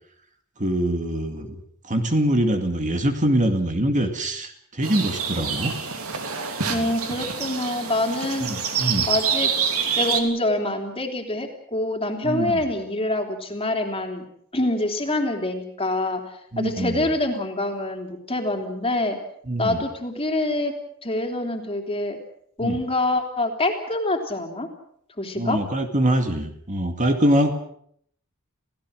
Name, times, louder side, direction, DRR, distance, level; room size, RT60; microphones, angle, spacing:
voice 1, 0.6-1.6 1.9-5.7 6.6-6.9 8.4-9.1 12.2-12.6 16.5-17.1 19.5-19.8 22.6-22.8 25.4-27.5, right 1 dB, 35° right, 6 dB, 2.2 m, -24 dB
sound 1, 4.8-10.2, right 6 dB, 80° right, 3.2 m, -26 dB
voice 2, 6.7-9.5 10.0-14.2 14.5-16.2 16.6-19.2 19.6-20.7 21.0-22.2 22.6-24.7 25.2-25.6, left 1 dB, 25° left, 4 dB, 3.3 m, -25 dB
29.0 x 17.0 x 6.4 m, 0.67 s
head